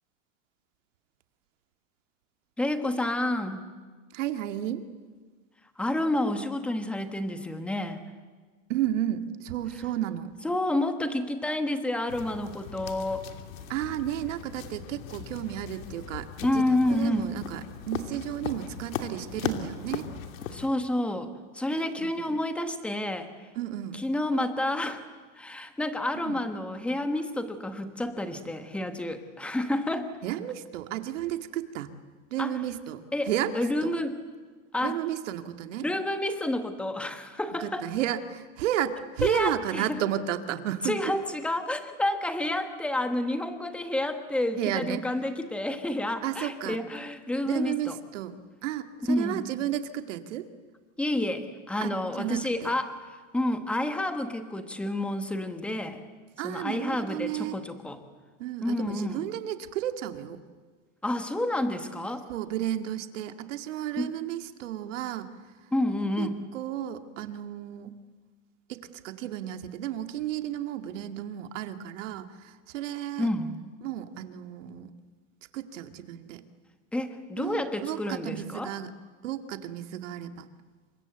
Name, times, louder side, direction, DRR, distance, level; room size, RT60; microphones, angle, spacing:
voice 1, 2.6-3.6 5.8-8.0 10.4-13.3 16.4-17.3 20.5-23.3 23.9-25.0 25.3-30.1 32.4-32.6 33.1-34.2 34.7-35.0 35.8-37.9 39.2-40.0 40.8-48.0 49.1-49.5 51.0-53.0 53.3-56.0 56.4-58.0 58.6-59.2 61.0-62.3 64.0-64.1 65.7-66.4 73.2-73.6 76.9-78.7, left 1 dB, 5° left, 8 dB, 1.3 m, -29 dB
voice 2, 4.1-4.9 8.7-10.4 13.7-16.3 16.5-20.1 21.8-22.4 23.6-24.0 26.2-26.4 30.2-31.9 32.3-33.9 34.8-35.9 37.6-41.0 44.6-45.0 46.2-46.8 47.5-48.3 48.6-50.5 51.8-51.9 52.2-52.7 56.4-57.6 58.4-60.4 62.3-65.4 66.2-67.9 68.7-73.3 73.8-74.9 75.5-76.4 77.4-78.9 79.2-80.5, right 11 dB, 70° right, 9 dB, 2.2 m, -33 dB
sound 1, 12.1-20.7, left 8 dB, 85° left, 3.0 m, -38 dB
29.0 x 25.0 x 8.1 m, 1.5 s
supercardioid pair, 170°, 39 cm